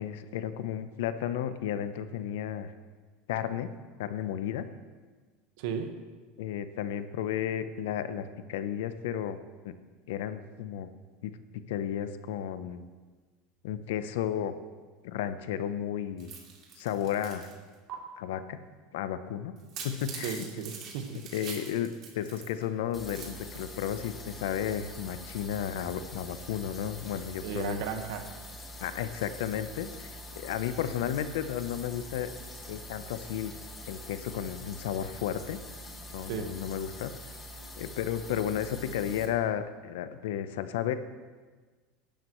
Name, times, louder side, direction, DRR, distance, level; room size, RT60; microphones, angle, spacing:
voice 1, 0.0-2.7 3.3-3.7 4.0-4.7 6.4-9.4 9.6-9.7 10.1-10.9 11.2-11.3 11.7-12.8 13.6-14.5 15.0-16.3 16.8-17.5 18.2-18.6 18.9-19.5 19.8-20.5 21.3-21.9 22.1-27.8 28.8-32.3 32.7-33.5 33.9-35.6 36.1-37.1 37.8-40.9, left 10 dB, 85° left, 11 dB, 0.8 m, -33 dB
voice 2, 5.6-5.9 20.2-21.2 27.4-28.2 36.3-36.5, right 7 dB, 70° right, 6 dB, 1.4 m, -35 dB
sound 1, 16.2-17.5 17.9-18.0 19.6-22.6 22.9-23.7, right 6 dB, 45° right, 3.0 m, -44 dB
sound 2, 22.9-39.3, equal, 20° left, 1.8 m, -45 dB
17.5 x 11.5 x 3.1 m, 1.4 s
supercardioid pair, 135°, 0 cm